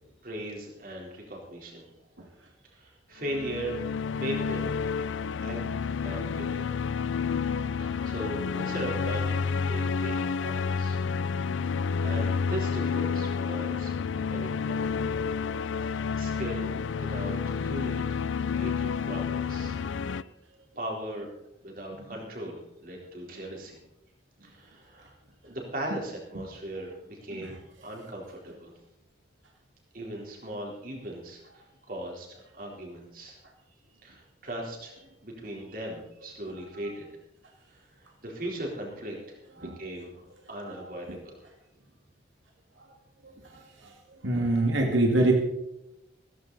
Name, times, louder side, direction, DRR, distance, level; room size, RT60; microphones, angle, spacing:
voice 1, 0.2-1.9 2.7-3.8 4.1-4.8 5.4-6.7 7.8-11.0 11.7-14.0 14.3-15.0 15.8-20.3 20.8-21.3 21.6-23.8 24.4-25.1 25.4-28.7 29.9-33.4 34.0-37.1 37.7-40.2 40.5-41.5, right 1 dB, 45° right, -1 dB, 4.0 m, -39 dB
sound 1, 3.2-20.2, left 5 dB, 85° left, 0.5 m, -30 dB
voice 2, 40.6-41.2 42.8-42.9 43.2-43.9 44.2-45.3, right 2 dB, 90° right, 1 dB, 2.3 m, -27 dB
16.0 x 15.0 x 4.1 m, 0.88 s
head